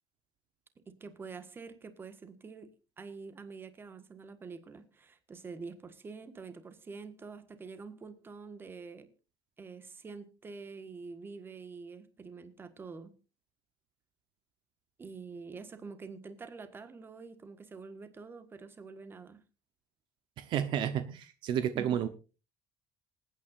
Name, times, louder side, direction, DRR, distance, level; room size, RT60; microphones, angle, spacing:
voice 1, 0.9-2.7 3.0-9.1 9.6-13.1 15.0-19.4 21.7-22.0, right 4 dB, 25° right, 10 dB, 1.5 m, -46 dB
voice 2, 20.4-22.1, right 9 dB, 65° right, 11 dB, 0.9 m, -31 dB
27.0 x 9.1 x 2.5 m, 0.31 s
cardioid pair, 125°, 9 cm